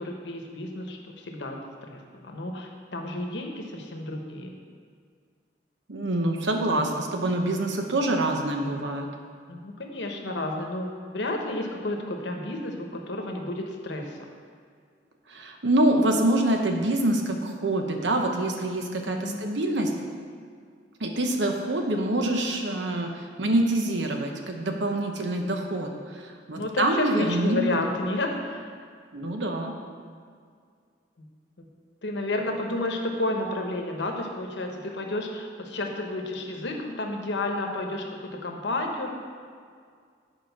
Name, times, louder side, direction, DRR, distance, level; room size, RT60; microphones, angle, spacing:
voice 1, 0.0-4.5 6.7-6.8 9.5-14.1 19.1-19.4 26.6-28.7 31.2-31.3 31.6-31.7 32.0-39.1, left 2 dB, 75° left, 2 dB, 1.1 m, -31 dB
voice 2, 5.9-9.1 15.3-19.9 21.0-27.8 29.1-29.7, right 1 dB, 85° right, 3 dB, 1.0 m, -26 dB
9.1 x 5.0 x 5.7 m, 2.1 s
head